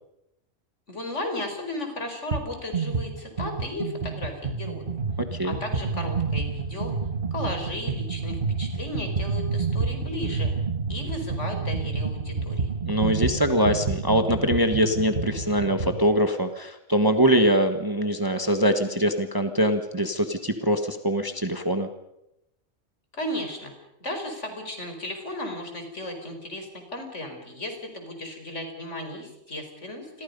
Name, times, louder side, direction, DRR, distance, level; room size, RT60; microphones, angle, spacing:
voice 1, 0.9-4.8 5.4-6.9 7.3-10.5 10.9-12.7 23.1-23.7 24.0-30.2, left 1 dB, 55° left, 4 dB, 5.2 m, -35 dB
sound 1, 2.3-2.5 2.7-16.0, right 4 dB, 40° right, 1.5 m, -29 dB
voice 2, 5.2-5.5 12.8-21.9, equal, 15° right, 7 dB, 1.4 m, -23 dB
29.0 x 22.5 x 5.4 m, 0.84 s
omnidirectional pair, 1.4 m